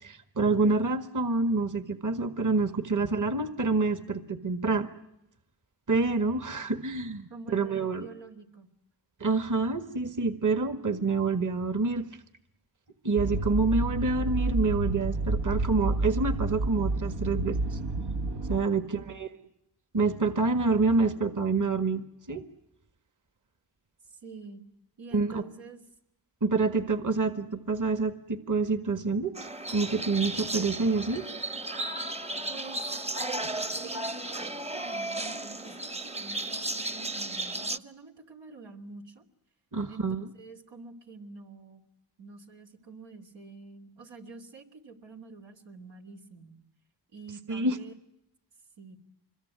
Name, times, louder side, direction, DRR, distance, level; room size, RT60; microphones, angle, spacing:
voice 1, 0.0-4.9 5.9-8.1 9.2-12.1 13.0-17.8 18.5-19.3 19.9-22.4 25.1-25.4 26.4-31.3 39.7-40.3 47.5-47.8, right 3 dB, 45° right, 9 dB, 1.7 m, -27 dB
voice 2, 7.3-8.7 18.6-19.2 24.1-24.6 25.0-25.8 32.5-32.9 33.3-39.2 39.9-40.1 40.3-41.8 42.2-46.5 47.1-47.9 48.8-49.0, right 3 dB, 85° right, 2 dB, 3.1 m, -47 dB
sound 1, 13.2-18.6, right 2 dB, 70° right, 1.2 m, -29 dB
sound 2, 29.3-37.8, right 2 dB, 15° right, 0.9 m, -34 dB
26.0 x 22.0 x 9.6 m, 0.85 s
cardioid pair, 55°, 43 cm